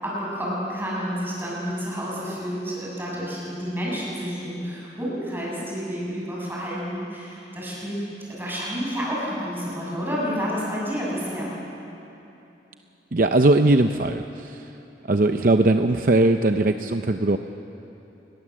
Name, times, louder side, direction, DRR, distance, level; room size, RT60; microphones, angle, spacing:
voice 1, 0.0-8.0 8.3-11.5, equal, 10° right, -5 dB, 7.9 m, -30 dB
voice 2, 13.1-14.7 15.1-17.4, right 2 dB, 50° right, 7 dB, 0.7 m, -20 dB
29.0 x 21.0 x 7.6 m, 2.9 s
head